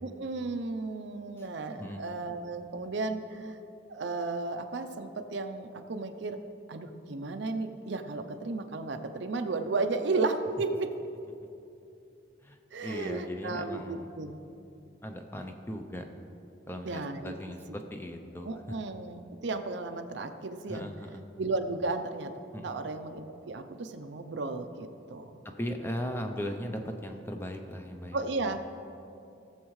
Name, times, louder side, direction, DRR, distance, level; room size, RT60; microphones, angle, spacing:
voice 1, 0.0-3.6 3.9-6.4 6.7-10.9 12.7-14.4 16.8-17.3 18.4-20.9 21.4-22.3 22.6-25.3 28.1-28.6, right 3 dB, 65° right, 7 dB, 0.5 m, -34 dB
voice 2, 12.4-14.1 15.0-16.0 16.7-18.8 20.7-21.2 22.5-22.9 25.6-28.2, equal, 10° left, 4 dB, 0.5 m, -38 dB
17.0 x 7.2 x 3.2 m, 2.7 s
head